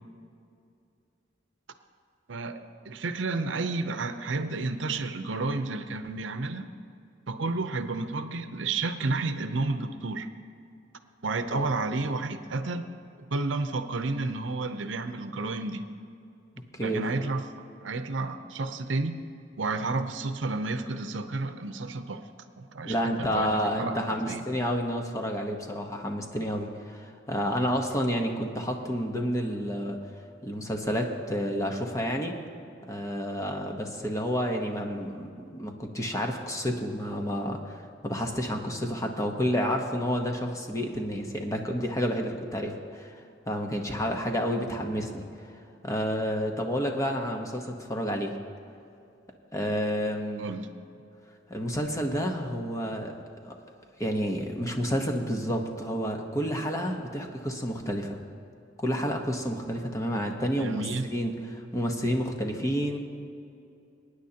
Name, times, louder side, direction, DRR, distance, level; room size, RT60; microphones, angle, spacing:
voice 1, 2.3-6.7 7.3-10.3 11.2-12.9 13.3-15.8 16.8-17.4 17.8-19.2 19.6-22.2 22.6-23.5 23.8-24.0 24.3-24.4 50.4-50.7 60.6-61.1, right 3 dB, 80° right, 9 dB, 0.7 m, -31 dB
voice 2, 22.8-30.0 30.4-32.3 32.9-43.2 43.5-45.2 45.8-48.4 49.5-50.5 51.5-53.1 53.4-53.5 54.0-58.2 58.8-60.9 61.1-63.0, equal, 15° left, 2 dB, 1.0 m, -30 dB
23.0 x 9.8 x 2.9 m, 2.6 s
head